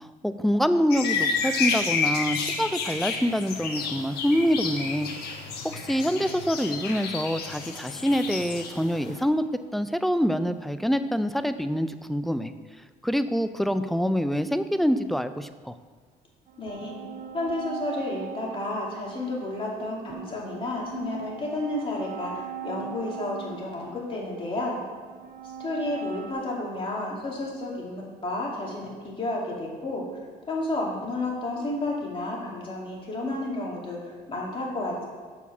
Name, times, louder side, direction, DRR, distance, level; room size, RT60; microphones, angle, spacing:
voice 1, 0.0-5.1 5.6-9.4 9.7-12.5 13.0-15.7, equal, ahead, 10 dB, 0.3 m, -26 dB
sound 1, 0.9-9.2, left 5 dB, 70° left, 1.2 m, -30 dB
sound 2, 16.5-26.3, right 8 dB, 55° right, 0.7 m, -40 dB
voice 2, 16.6-17.0 17.3-24.8 25.6-30.1 30.5-35.0, left 2 dB, 30° left, -3 dB, 2.2 m, -31 dB
6.9 x 4.8 x 5.9 m, 1.5 s
cardioid pair, 110°, 17 cm